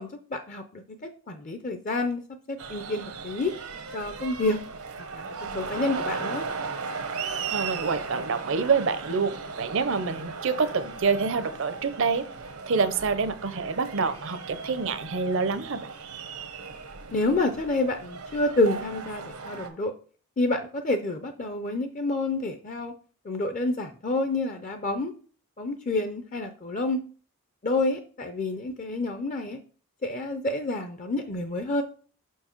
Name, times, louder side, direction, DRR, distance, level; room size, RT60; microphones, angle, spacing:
voice 1, 0.0-2.2 2.5-3.5 3.9-4.6 5.1-5.2 5.5-6.5 17.1-19.9 20.4-22.9 23.2-25.1 25.6-27.0 27.6-29.6 30.0-31.8, left 2 dB, 35° left, 7 dB, 0.5 m, -28 dB
sound 1, 2.6-19.7, right 4 dB, 85° right, 1.0 m, -37 dB
voice 2, 7.5-12.2 12.7-15.9, right 5 dB, 60° right, 12 dB, 0.6 m, -27 dB
6.0 x 4.6 x 4.4 m, 0.42 s
head